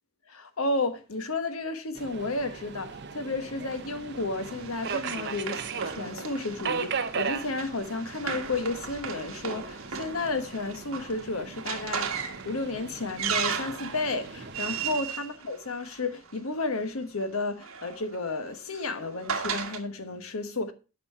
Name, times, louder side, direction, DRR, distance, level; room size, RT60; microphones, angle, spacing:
voice 1, 0.3-20.7, left 3 dB, 80° left, 1.2 m, -32 dB
Subway metro underground, 2.0-15.0, right 5 dB, 55° right, 0.8 m, -38 dB
Run, 3.7-16.3 17.3-19.8, right 7 dB, 70° right, 1.5 m, -36 dB
8.9 x 5.5 x 5.4 m
head